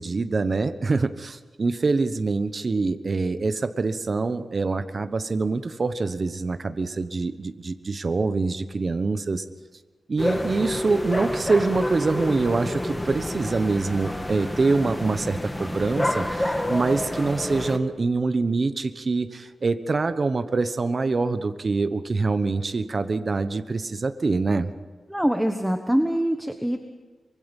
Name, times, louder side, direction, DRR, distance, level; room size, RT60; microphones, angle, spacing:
voice 1, 0.0-9.4 10.1-24.7, right 3 dB, 45° right, 10 dB, 1.1 m, -25 dB
sound 1, 10.2-17.8, left 1 dB, 15° left, 1.7 m, -28 dB
voice 2, 25.1-26.8, equal, 5° right, 5 dB, 1.3 m, -24 dB
24.5 x 23.0 x 5.4 m, 1.3 s
wide cardioid pair, 110°, 0 cm